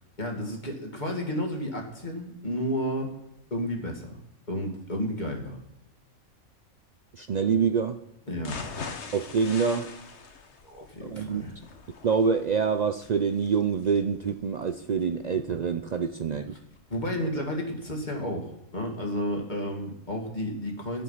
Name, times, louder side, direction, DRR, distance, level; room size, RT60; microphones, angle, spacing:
voice 1, 0.2-3.1 3.5-4.2 4.5-5.6 8.3-8.6 10.6-11.5 16.9-21.0, equal, 30° left, 1 dB, 2.3 m, -32 dB
voice 2, 7.1-8.0 9.1-9.9 11.0-11.4 12.0-16.5, right 6 dB, 80° right, 7 dB, 0.3 m, -26 dB
sound 1, 8.4-16.4 16.8-16.9 17.2-17.3, left 4 dB, 55° left, 1.3 m, -43 dB
12.0 x 9.1 x 5.7 m, 0.85 s
omnidirectional pair, 1.5 m